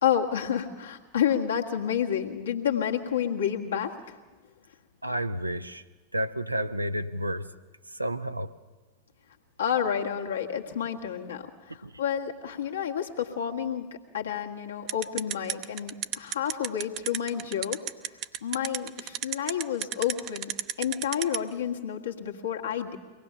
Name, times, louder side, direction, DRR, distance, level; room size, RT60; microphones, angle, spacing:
voice 1, 0.0-3.9 9.6-13.9 14.1-17.8 18.4-20.5 20.8-23.0, left 9 dB, 65° left, 2 dB, 1.8 m, -29 dB
voice 2, 5.0-5.8 6.1-7.5 7.9-8.5 11.8-11.9, right 1 dB, 85° right, 9 dB, 0.7 m, -31 dB
sound 1, 14.9-21.4, right 12 dB, 40° right, 0.8 m, -30 dB
24.0 x 19.0 x 6.8 m, 1.2 s
figure-of-eight pair, 90°, 0 cm